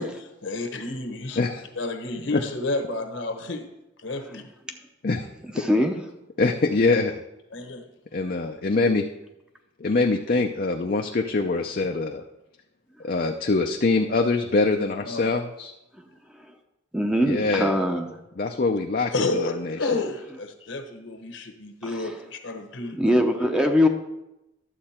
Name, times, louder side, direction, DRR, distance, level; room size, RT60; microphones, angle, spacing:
voice 1, 0.0-1.4 1.7-3.6 4.0-4.4 7.5-7.9 15.0-15.4 19.1-23.0, left 2 dB, 70° left, 6 dB, 1.2 m, -30 dB
voice 2, 1.4-1.7 2.3-2.4 5.0-5.3 5.6-5.7 6.4-7.2 8.1-9.1 9.8-12.2 13.0-15.7 17.2-17.7 18.4-19.1 19.4-19.9, left 3 dB, 45° left, 3 dB, 0.5 m, -24 dB
voice 3, 5.5-5.9 16.3-16.5 16.9-18.2 22.0-22.1 22.9-23.9, left 1 dB, 5° right, 4 dB, 0.7 m, -22 dB
11.5 x 7.5 x 4.3 m, 0.93 s
head